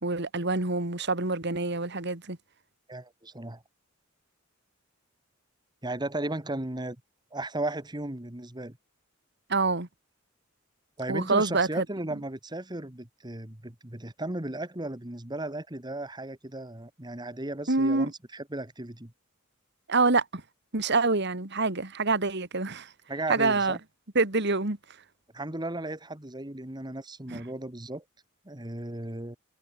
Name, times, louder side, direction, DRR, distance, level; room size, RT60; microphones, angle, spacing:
voice 1, 0.0-2.4 9.5-9.9 11.1-11.8 17.7-18.1 19.9-20.4 20.7-22.9 23.3-23.8 24.1-24.8 27.3-27.4, right 3 dB, 60° right, 2.5 m, -26 dB
voice 2, 2.9-3.6 5.8-7.0 7.3-8.8 11.0-19.1 23.1-23.8 25.3-28.0 28.5-29.4, right 2 dB, 20° right, 2.1 m, -35 dB
head